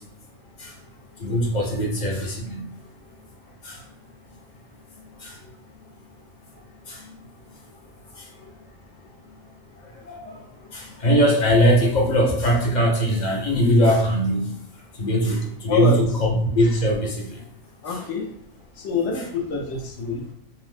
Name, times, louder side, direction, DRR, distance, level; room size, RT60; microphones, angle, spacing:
voice 1, 1.2-2.6 3.6-3.8 5.2-5.3 6.9-7.0 10.1-10.3 10.7-14.5 15.0-17.3 17.9-18.0, equal, 50° left, -1 dB, 0.5 m, -21 dB
voice 2, 15.7-16.0 17.8-18.3 18.8-20.2, left 4 dB, 65° left, 1 dB, 0.9 m, -26 dB
2.8 x 2.0 x 3.1 m, 0.66 s
omnidirectional pair, 1.4 m